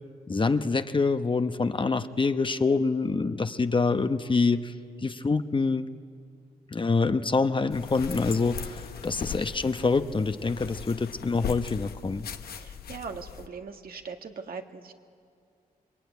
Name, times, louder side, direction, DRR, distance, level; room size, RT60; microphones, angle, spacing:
voice 1, 0.3-4.7 5.0-5.9 6.7-12.3, left 4 dB, 30° left, 10 dB, 0.9 m, -26 dB
sound 1, 7.7-13.5, left 7 dB, 85° left, 1.1 m, -39 dB
voice 2, 12.6-14.9, right 5 dB, 70° right, 4 dB, 1.8 m, -40 dB
27.0 x 23.0 x 9.4 m, 2.3 s
cardioid pair, 80°, 16 cm